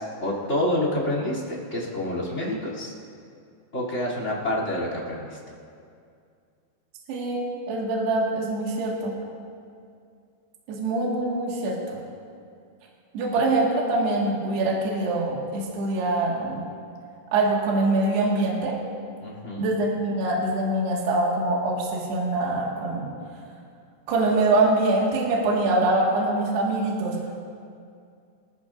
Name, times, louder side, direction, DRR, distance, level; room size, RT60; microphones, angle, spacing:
voice 1, 0.0-2.9 3.7-5.4 19.2-19.7, left 1 dB, 20° left, -3 dB, 2.4 m, -28 dB
voice 2, 7.1-9.1 10.7-12.0 13.1-16.6 17.3-18.8 19.6-23.1 24.1-27.2, right 2 dB, 70° right, -3 dB, 3.8 m, -24 dB
24.5 x 14.5 x 2.6 m, 2.4 s
omnidirectional pair, 5.1 m